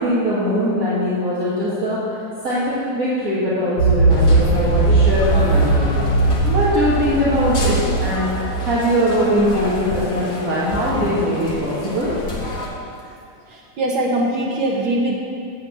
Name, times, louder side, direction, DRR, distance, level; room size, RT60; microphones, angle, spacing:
voice 1, 0.0-7.7 8.0-8.3 8.6-12.1, equal, 35° right, -9 dB, 1.7 m, -21 dB
sound 1, 3.8-9.5, right 3 dB, 70° left, 1.2 m, -19 dB
sound 2, 4.1-12.7, left 2 dB, 45° left, 1.6 m, -28 dB
voice 2, 13.5-15.2, right 1 dB, 65° right, -2 dB, 1.2 m, -21 dB
8.4 x 7.7 x 7.2 m, 2.5 s
omnidirectional pair, 3.5 m